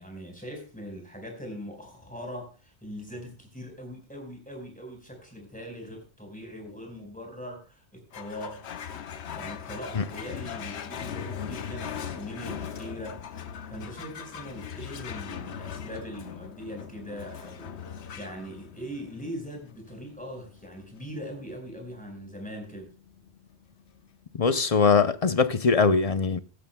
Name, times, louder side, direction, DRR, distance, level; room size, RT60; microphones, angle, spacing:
voice 1, 0.0-8.6 9.4-13.2 13.7-22.9, equal, 5° left, 4.7 m, -41 dB
sound 1, 8.1-24.9, left 8 dB, 80° left, 1.1 m, -40 dB
voice 2, 24.4-26.4, left 5 dB, 45° left, 0.6 m, -22 dB
16.5 x 13.0 x 2.2 m
omnidirectional pair, 1.1 m